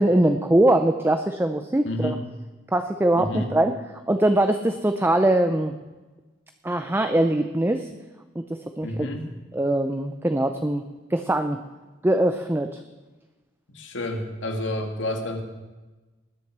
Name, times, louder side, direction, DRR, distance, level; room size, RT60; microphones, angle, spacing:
voice 1, 0.0-2.2 2.7-3.7 4.1-5.7 6.6-7.9 8.4-8.5 8.8-9.1 9.5-10.8 11.1-11.6 12.0-12.8, right 1 dB, 10° right, 7 dB, 0.5 m, -22 dB
voice 2, 1.8-2.2 3.1-3.5 8.8-9.3 13.7-15.4, left 1 dB, 85° left, 4 dB, 2.0 m, -29 dB
20.0 x 7.7 x 6.1 m, 1.2 s
head